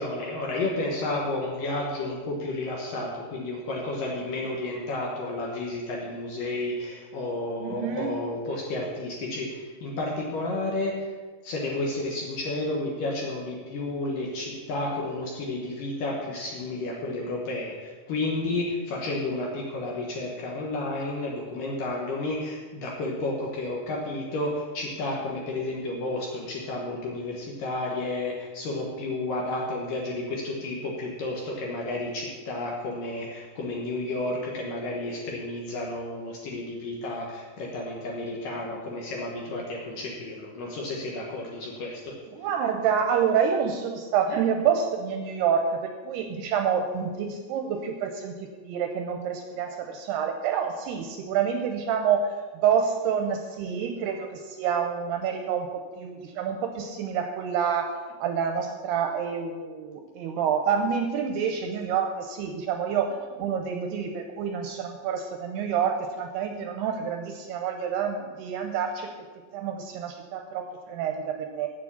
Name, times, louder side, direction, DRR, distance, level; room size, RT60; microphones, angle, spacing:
voice 1, 0.0-11.1 11.4-42.1, left 2 dB, 65° left, -2 dB, 2.3 m, -31 dB
voice 2, 7.6-8.3 42.3-52.3 52.6-69.1 69.5-71.7, right 7 dB, 80° right, 4 dB, 2.5 m, -28 dB
8.9 x 7.8 x 7.2 m, 1.4 s
omnidirectional pair, 5.3 m